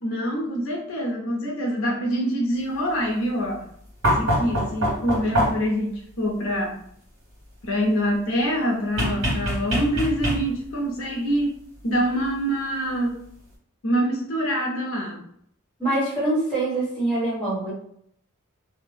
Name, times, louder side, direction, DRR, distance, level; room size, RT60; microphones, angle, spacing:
voice 1, 0.0-3.6 4.2-6.8 7.6-11.6 11.8-13.2 13.8-15.2, equal, 70° left, -1 dB, 0.6 m, -25 dB
sound 1, 4.0-5.8 9.0-10.7 12.2-12.3, equal, 55° right, 1.3 m, -24 dB
voice 2, 15.8-17.7, right 2 dB, 5° left, -8 dB, 1.2 m, -24 dB
2.5 x 2.1 x 3.2 m, 0.67 s
head